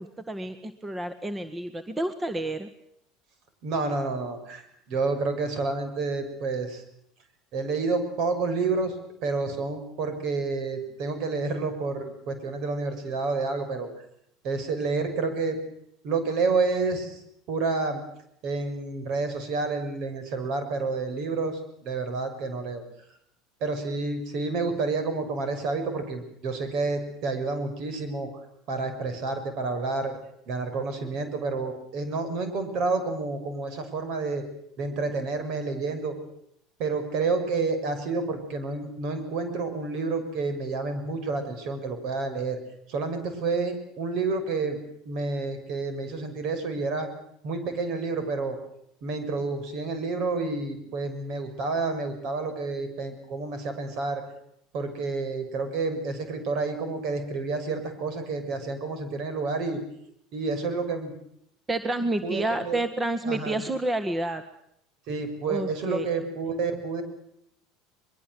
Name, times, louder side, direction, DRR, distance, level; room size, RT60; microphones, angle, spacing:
voice 1, 0.0-2.7 61.7-64.4 65.5-66.1, right 1 dB, 15° right, 11 dB, 1.8 m, -29 dB
voice 2, 3.6-6.8 7.5-8.9 9.2-13.9 14.4-15.6 16.0-17.2 17.5-18.0 18.4-22.8 23.6-28.3 28.7-30.2 30.5-34.4 34.8-36.1 36.8-42.6 42.9-44.8 45.0-47.1 47.4-48.6 49.0-54.2 54.7-59.8 60.3-61.1 62.2-62.8 63.3-63.6 65.1-67.0, right 3 dB, 60° right, 9 dB, 6.3 m, -29 dB
23.0 x 23.0 x 8.0 m, 0.73 s
hypercardioid pair, 85°, 0 cm